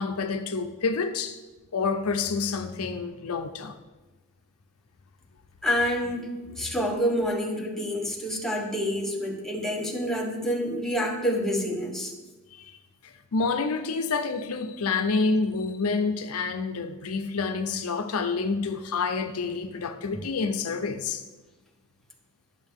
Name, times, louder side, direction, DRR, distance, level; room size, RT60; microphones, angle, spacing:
voice 1, 0.0-1.4 1.7-3.8 12.5-12.8 13.0-21.2, left 4 dB, 70° left, 0.6 m, -28 dB
voice 2, 5.6-6.3 6.6-12.1, equal, ahead, 1.1 m, -27 dB
11.0 x 7.2 x 3.6 m
head